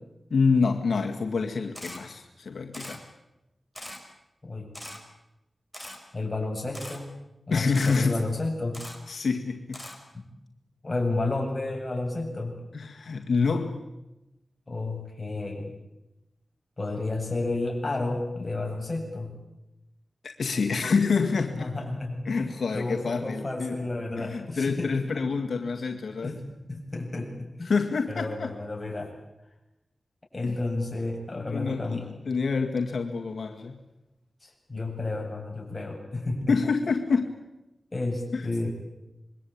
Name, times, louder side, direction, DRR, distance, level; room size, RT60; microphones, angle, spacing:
voice 1, 0.3-3.0 7.5-8.2 9.1-9.8 12.7-13.8 20.2-21.7 22.3-23.8 24.2-26.4 27.7-28.5 30.4-30.6 31.3-33.8 36.5-37.4 38.3-38.4, left 4 dB, 85° left, 4 dB, 1.9 m, -27 dB
Camera, 1.7-2.0 2.7-3.0 3.7-4.0 4.7-5.0 5.7-6.0 6.7-7.0 7.7-8.0 8.7-9.0 9.7-10.0, left 1 dB, ahead, 5.1 m, -40 dB
voice 2, 6.1-7.1 7.5-8.8 10.1-10.3 10.8-12.5 14.7-15.8 16.8-19.3 21.5-25.1 26.2-27.7 28.1-29.1 30.3-32.1 34.4-36.5 37.9-38.7, left 2 dB, 30° left, 1 dB, 8.0 m, -31 dB
26.5 x 22.5 x 8.8 m, 0.94 s
wide cardioid pair, 90°, 0 cm